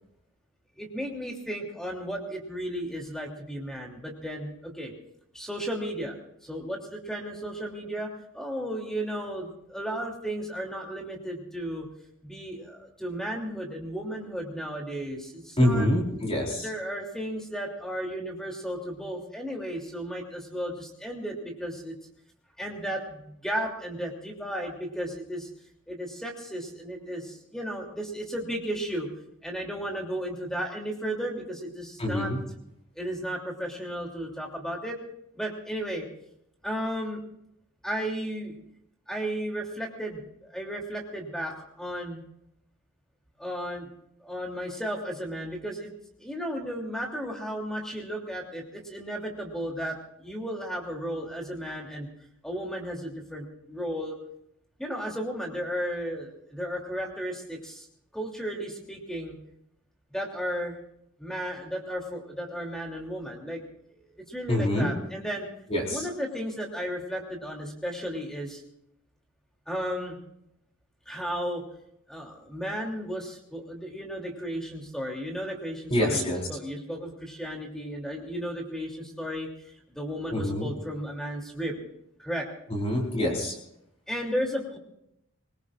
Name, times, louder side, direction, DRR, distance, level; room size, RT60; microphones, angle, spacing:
voice 1, 0.8-4.9 5.3-6.1 6.4-11.9 12.2-15.9 16.5-21.9 22.6-25.5 25.9-29.1 29.4-32.3 32.9-35.0 35.3-36.1 36.6-37.2 37.8-38.6 39.1-42.2 43.4-43.9 44.2-45.9 46.2-52.1 52.4-54.2 54.8-57.9 58.1-59.4 60.1-60.8 61.2-63.6 63.9-65.5 65.9-68.6 69.7-70.2 71.1-71.6 72.1-79.5 79.9-81.8 82.2-82.5 84.1-84.8, equal, ahead, 0 dB, 2.9 m, -34 dB
voice 2, 15.6-16.7 32.0-32.4 64.5-64.9 65.7-66.0 75.9-76.4 80.3-80.7 82.7-83.5, left 1 dB, 25° left, -1 dB, 4.4 m, -25 dB
23.5 x 21.0 x 2.5 m, 0.78 s
head